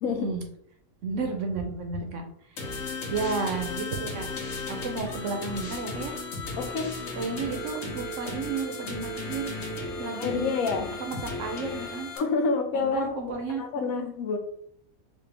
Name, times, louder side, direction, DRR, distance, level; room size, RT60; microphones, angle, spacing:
voice 1, 0.0-0.4 1.0-2.2 2.5-2.7 3.1-4.3 4.7-6.2 7.2-9.5 10.0-10.5 11.0-12.1 12.7-13.6, right 4 dB, 65° right, 4 dB, 0.9 m, -32 dB
sound 1, 2.6-12.2, left 2 dB, 55° left, 1.1 m, -35 dB
voice 2, 6.6-6.9 10.1-10.9 12.2-14.4, left 4 dB, 80° left, 5 dB, 1.1 m, -28 dB
4.2 x 2.4 x 3.3 m, 0.66 s
omnidirectional pair, 1.5 m